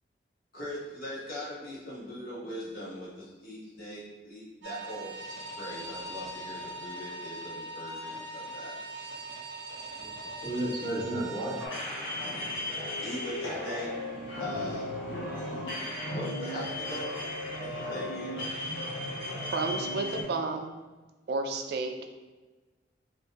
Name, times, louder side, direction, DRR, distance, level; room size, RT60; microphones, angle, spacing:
voice 1, 0.5-5.1 5.6-8.7 13.0-14.9 15.9-17.1 17.5-18.4, equal, 50° left, -8 dB, 1.2 m, -40 dB
sound 1, 4.6-11.7, right 2 dB, 85° right, 0.8 m, -41 dB
voice 2, 10.0-13.0 14.8-16.2, right 1 dB, 25° left, -8 dB, 1.2 m, -37 dB
sound 2, 11.6-20.2, left 1 dB, 80° left, 1.0 m, -35 dB
voice 3, 19.5-20.7 21.3-21.9, right 3 dB, 60° right, 4 dB, 0.4 m, -31 dB
2.8 x 2.6 x 3.3 m, 1.2 s
head